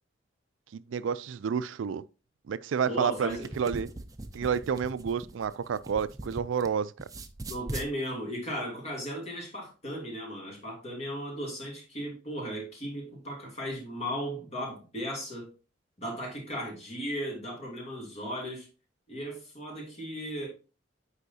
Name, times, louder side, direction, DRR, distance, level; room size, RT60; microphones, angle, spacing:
voice 1, 0.7-2.0 2.5-3.9 4.3-6.9, right 7 dB, 85° right, 0.4 m, -30 dB
voice 2, 2.9-3.5 7.5-15.5 16.0-18.7 19.1-20.5, equal, 35° left, 2.6 m, -36 dB
sound 1, 3.2-6.7 7.0-7.9, right 2 dB, 20° right, 0.5 m, -40 dB
8.2 x 4.9 x 2.7 m
head